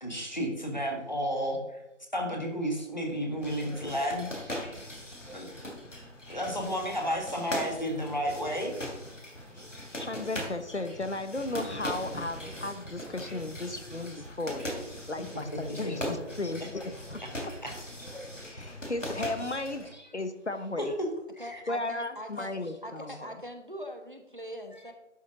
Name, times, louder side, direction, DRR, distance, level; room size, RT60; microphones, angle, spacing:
voice 1, 0.0-1.8 2.1-4.9 5.3-5.5 6.3-8.7 15.8-16.1 17.6-17.7 21.0-21.1 21.4-21.6, equal, 35° left, 2 dB, 1.7 m, -32 dB
sound 1, 3.4-19.9, equal, 85° left, 3.0 m, -40 dB
voice 2, 9.9-14.7 15.1-17.5 18.5-21.0 21.7-23.4, left 2 dB, 65° left, 10 dB, 0.8 m, -35 dB
voice 3, 21.4-22.5 22.8-24.9, equal, 40° right, 5 dB, 1.1 m, -42 dB
11.5 x 7.0 x 3.8 m, 0.94 s
figure-of-eight pair, 175°, 37 cm